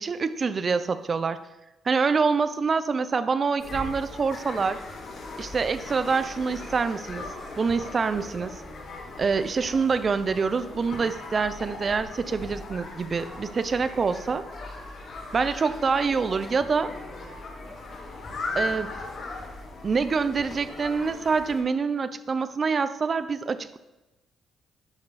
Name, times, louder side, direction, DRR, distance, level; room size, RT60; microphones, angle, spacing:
voice 1, 0.0-1.4 1.8-4.8 5.4-7.3 7.6-8.6 9.2-14.4 15.3-16.9 18.6-19.0 19.8-23.8, right 5 dB, 40° right, 13 dB, 0.7 m, -26 dB
sound 1, 3.6-21.6, left 2 dB, 60° left, 3.8 m, -38 dB
11.5 x 9.4 x 4.2 m, 1.0 s
cardioid pair, 90°, 0 cm